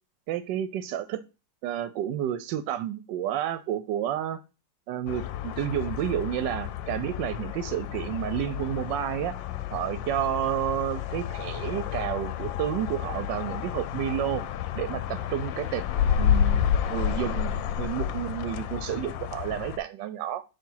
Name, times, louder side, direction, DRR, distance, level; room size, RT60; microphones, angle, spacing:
voice 1, 0.3-1.2 1.6-4.4 4.9-9.4 9.7-14.4 14.8-15.8 16.2-16.6 16.9-20.4, right 11 dB, 75° right, 1.2 m, -30 dB
sound 1, 5.1-19.8, left 9 dB, 80° left, 1.3 m, -30 dB
6.9 x 2.9 x 5.5 m
omnidirectional pair, 2.0 m